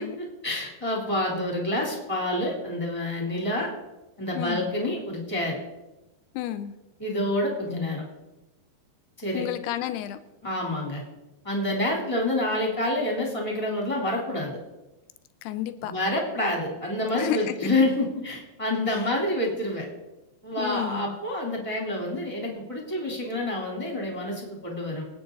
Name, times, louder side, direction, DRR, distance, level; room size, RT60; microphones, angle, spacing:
voice 1, 0.0-3.7 4.2-5.6 7.0-8.0 9.2-9.4 10.4-11.0 11.4-14.6 15.8-19.9 20.4-25.0, left 1 dB, 10° left, -1 dB, 2.8 m, -28 dB
voice 2, 4.3-4.7 6.3-6.7 9.3-10.2 15.4-15.9 17.1-17.5 20.6-21.1, left 12 dB, 80° left, 11 dB, 2.5 m, -31 dB
26.0 x 9.3 x 4.0 m, 1.0 s
omnidirectional pair, 5.1 m